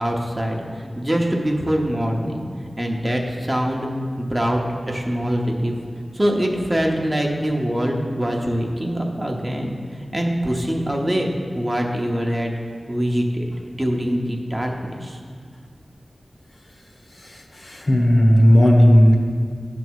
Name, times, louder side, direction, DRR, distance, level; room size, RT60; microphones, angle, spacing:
voice 1, 0.0-2.4 2.8-3.9 4.2-4.6 4.9-5.7 6.1-9.7 10.1-11.3 11.5-12.5 12.9-13.5 13.8-15.2, equal, 20° right, 0 dB, 0.9 m, -23 dB
voice 2, 17.1-19.2, equal, 50° left, 0 dB, 1.1 m, -15 dB
10.5 x 3.5 x 6.2 m, 2.1 s
wide cardioid pair, 70°, 0 cm